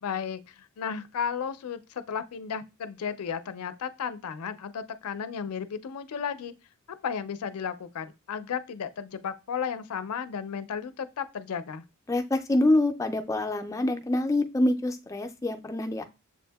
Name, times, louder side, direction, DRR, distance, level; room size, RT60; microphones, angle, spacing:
voice 1, 0.0-6.5 7.0-11.8, left 7 dB, 85° left, 0.4 m, -34 dB
voice 2, 12.1-16.0, left 1 dB, 15° left, 0.3 m, -26 dB
7.0 x 2.6 x 2.2 m
head